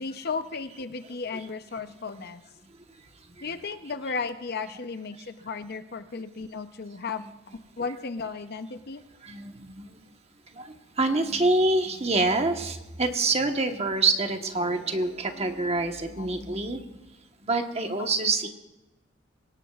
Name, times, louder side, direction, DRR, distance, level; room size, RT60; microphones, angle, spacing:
voice 1, 0.0-2.4 3.4-7.2 7.8-9.0 16.2-16.3, left 4 dB, 50° left, 10 dB, 0.7 m, -34 dB
voice 2, 2.6-3.5 9.2-10.1 10.5-17.0 17.4-18.5, right 3 dB, 30° right, 5 dB, 1.2 m, -27 dB
22.5 x 18.0 x 2.4 m, 1.1 s
head